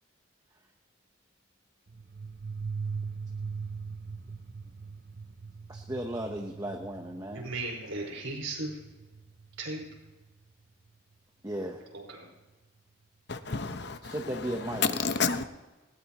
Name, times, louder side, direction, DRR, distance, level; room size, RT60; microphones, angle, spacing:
sound 1, 1.9-10.3, right 5 dB, 55° right, 0.7 m, -40 dB
voice 1, 5.7-7.5 11.4-11.8 14.0-15.2, right 1 dB, 15° right, 1.0 m, -36 dB
voice 2, 7.3-8.8 9.6-9.9 11.9-12.3, right 2 dB, 85° right, 5.2 m, -36 dB
voice 3, 13.3-14.1 14.8-15.4, left 5 dB, 55° left, 0.9 m, -29 dB
19.5 x 18.0 x 3.0 m
head